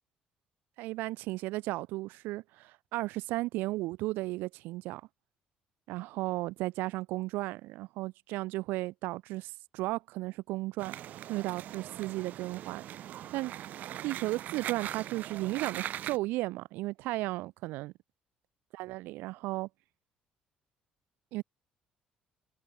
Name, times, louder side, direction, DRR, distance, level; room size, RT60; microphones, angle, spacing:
voice 1, 0.8-5.0 5.9-10.9 11.3-12.9 13.3-13.5 14.0-17.9 18.8-19.7 21.3-21.4, right 19 dB, 85° right, 0.4 m, -34 dB
sound 1, 10.8-16.2, right 12 dB, 60° right, 1.3 m, -41 dB
cardioid pair, 125°, 3 cm